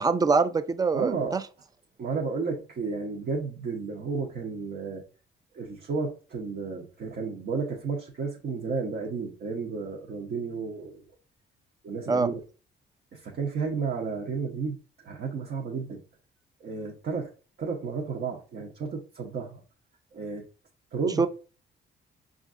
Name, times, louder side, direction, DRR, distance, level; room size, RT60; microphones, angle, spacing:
voice 1, 0.0-1.4 12.1-12.3 21.2-21.3, right 4 dB, 20° right, 0.3 m, -24 dB
voice 2, 0.9-1.4 2.0-5.0 5.5-11.0 11.8-12.4 13.1-14.8 15.0-16.0 16.6-17.3 17.6-19.6 20.1-20.4 20.9-21.2, right 4 dB, 55° right, 0.8 m, -32 dB
5.1 x 2.5 x 2.5 m
cardioid pair, 90°, 20 cm